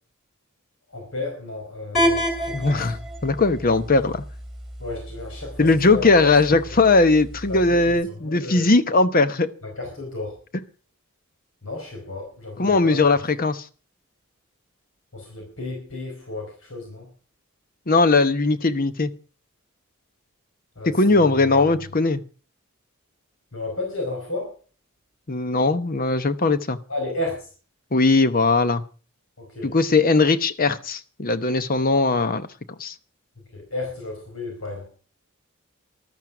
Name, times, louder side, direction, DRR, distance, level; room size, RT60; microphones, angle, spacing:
voice 1, 0.9-2.9 4.8-6.5 7.5-8.7 9.6-10.3 11.6-13.0 15.1-17.1 20.8-21.6 23.5-24.5 26.9-27.5 29.4-29.7 33.5-34.8, left 2 dB, 70° left, 4.6 m, -33 dB
sound 1, 1.9-7.9, equal, ahead, 3.0 m, -30 dB
voice 2, 2.5-3.0 3.2-4.2 5.6-9.5 12.6-13.6 17.9-19.1 20.9-22.2 25.3-26.8 27.9-28.8 29.6-32.5 32.8-32.9, left 3 dB, 45° left, 0.9 m, -19 dB
14.0 x 12.0 x 6.0 m
head